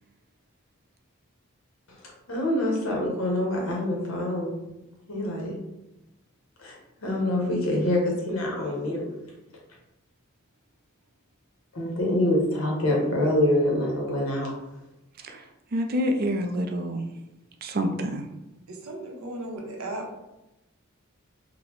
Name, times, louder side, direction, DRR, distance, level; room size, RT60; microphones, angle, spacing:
voice 1, 2.3-4.5 5.1-5.6 6.6-9.1 11.7-14.5, left 1 dB, 75° left, -1 dB, 1.0 m, -25 dB
voice 2, 15.7-17.0 17.6-18.2, equal, 45° right, 5 dB, 0.3 m, -27 dB
voice 3, 18.7-20.1, right 1 dB, 85° right, 0 dB, 0.8 m, -36 dB
3.9 x 2.1 x 3.0 m, 0.92 s
head